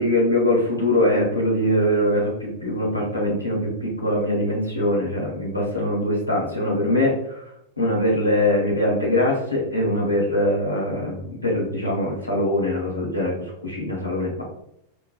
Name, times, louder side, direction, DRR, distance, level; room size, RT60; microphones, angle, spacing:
voice 1, 0.0-7.4 7.8-14.4, left 1 dB, 85° left, -3 dB, 0.8 m, -22 dB
3.1 x 2.2 x 2.2 m, 0.77 s
figure-of-eight pair, 90°, 0 cm